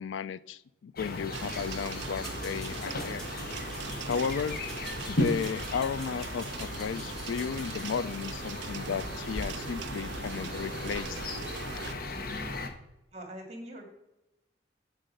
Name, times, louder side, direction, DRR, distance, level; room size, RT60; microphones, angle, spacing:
voice 1, 0.0-3.2 4.1-4.6 5.1-11.2, left 6 dB, 90° left, 18 dB, 0.4 m, -34 dB
sound 1, 1.0-12.7, left 1 dB, 50° left, 0.9 m, -36 dB
sound 2, 1.3-12.0, right 7 dB, 75° right, 0.5 m, -42 dB
sound 3, 2.2-7.9, right 1 dB, 5° left, 1.6 m, -48 dB
voice 2, 13.1-13.9, right 1 dB, 35° right, 3 dB, 2.1 m, -43 dB
7.3 x 6.6 x 5.4 m, 0.92 s
head